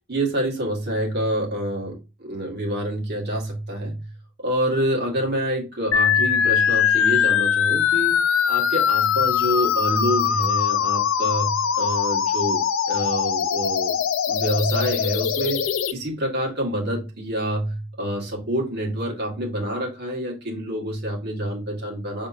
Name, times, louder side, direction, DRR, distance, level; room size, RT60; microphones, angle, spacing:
voice 1, 0.1-4.1 4.4-8.2 8.5-14.0 14.3-15.6 15.9-22.3, right 1 dB, 55° right, 0 dB, 1.8 m, -27 dB
sound 1, 5.9-15.9, left 8 dB, 85° left, 0.4 m, -21 dB
5.5 x 3.4 x 2.6 m, 0.28 s
head